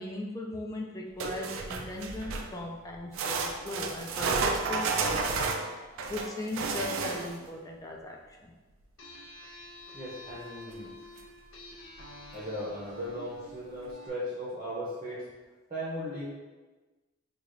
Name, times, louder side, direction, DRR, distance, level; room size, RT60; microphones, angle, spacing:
voice 1, 0.0-5.5 5.8-8.5, left 1 dB, 15° left, 0 dB, 0.3 m, -38 dB
sound 1, 1.2-2.6 3.1-7.5 10.7-10.8 11.2-11.3 12.0-12.1, right 4 dB, 75° right, 0.4 m, -32 dB
sound 2, 9.0-14.1, equal, 75° left, 0.7 m, -48 dB
voice 2, 9.9-10.9 12.3-15.3 15.7-16.2, equal, 25° right, -6 dB, 0.6 m, -37 dB
4.9 x 2.3 x 2.5 m, 1.3 s
head